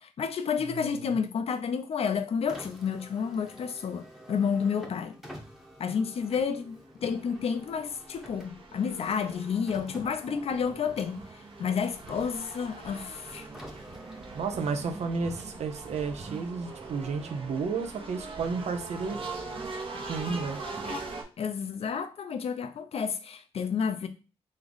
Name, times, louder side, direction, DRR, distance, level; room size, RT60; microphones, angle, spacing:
voice 1, 0.0-5.2 5.8-11.2 11.6-13.5 20.8-21.0 21.4-24.1, left 6 dB, 60° left, 0.5 m, -30 dB
voice 2, 0.7-1.1 14.3-19.2 20.1-20.6, right 4 dB, 75° right, 0.7 m, -32 dB
Car, 2.4-17.8, equal, 5° right, 0.9 m, -50 dB
sound 1, 6.5-6.6 7.1-21.2, right 3 dB, 50° right, 1.0 m, -42 dB
3.5 x 3.2 x 3.9 m
wide cardioid pair, 110°, 11 cm